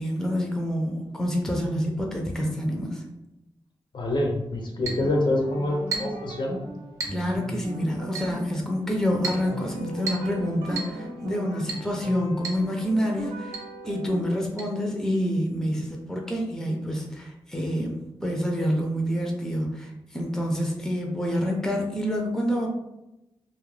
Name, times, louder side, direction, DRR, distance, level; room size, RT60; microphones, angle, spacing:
voice 1, 0.0-3.0 7.1-13.6 13.9-22.7, equal, 5° left, 0 dB, 0.5 m, -27 dB
voice 2, 3.9-6.6, left 1 dB, 60° left, 1 dB, 0.5 m, -26 dB
sound 1, 4.8-14.2, right 2 dB, 80° right, 0.6 m, -38 dB
Chink clink, 4.9-5.1 5.9-6.2 7.0-7.2 8.2-8.4 9.2-9.5 10.1-10.3 10.8-11.0 11.7-11.9 12.4-12.7 12.9-13.0 13.5-13.7 14.6-14.7, right 4 dB, 35° right, 0.7 m, -33 dB
2.3 x 2.1 x 3.1 m, 0.92 s
wide cardioid pair, 105°, 9 cm